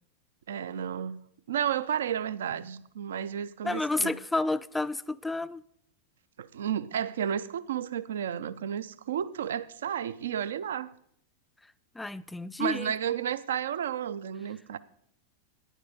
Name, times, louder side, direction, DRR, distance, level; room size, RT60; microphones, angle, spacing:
voice 1, 0.5-1.2 1.5-4.2 6.4-10.9 12.6-14.8, right 9 dB, 60° right, 0.4 m, -32 dB
voice 2, 3.6-5.6 12.0-12.9, left 2 dB, 5° left, 0.4 m, -30 dB
11.0 x 9.9 x 4.9 m
figure-of-eight pair, 90°, 0 cm